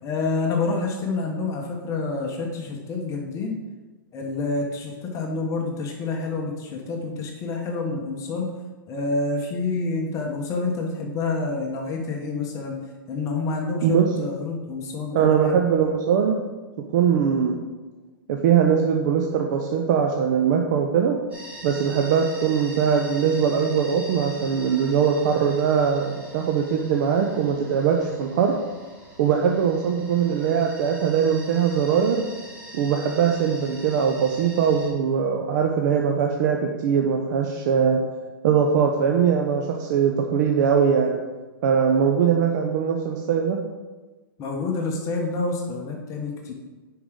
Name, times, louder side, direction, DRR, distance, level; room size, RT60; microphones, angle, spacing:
voice 1, 0.0-3.6 4.1-8.5 8.9-12.8 13.1-15.6 44.4-46.5, left 3 dB, 25° left, 1 dB, 1.2 m, -28 dB
voice 2, 15.1-16.4 16.9-17.6 18.3-21.2 21.6-28.5 29.2-32.3 32.7-38.0 38.4-41.2 41.6-43.6, right 7 dB, 50° right, 2 dB, 0.8 m, -21 dB
sound 1, 21.3-34.9, right 1 dB, 10° right, 2.7 m, -43 dB
10.0 x 4.9 x 3.8 m, 1.2 s
hypercardioid pair, 145°, 12 cm